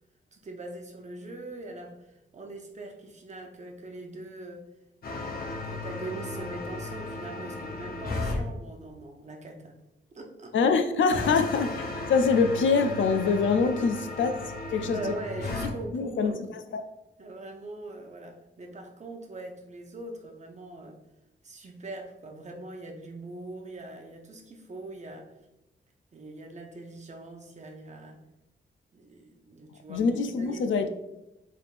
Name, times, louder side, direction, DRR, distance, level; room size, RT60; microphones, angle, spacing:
voice 1, 0.3-4.7 5.2-9.8 10.1-10.5 11.1-11.2 13.8-13.9 14.8-16.5 17.2-21.0 21.4-25.3 26.1-28.2 28.9-30.9, right 2 dB, 35° right, 0.6 m, -42 dB
sound 1, 5.0-8.4 11.1-15.7, left 2 dB, 50° left, 0.7 m, -35 dB
voice 2, 10.5-14.3 14.7-15.1 15.9-16.3 16.7-16.8 29.9-30.9, left 5 dB, 80° left, 0.4 m, -24 dB
4.6 x 3.4 x 2.5 m
wide cardioid pair, 165°, 20 cm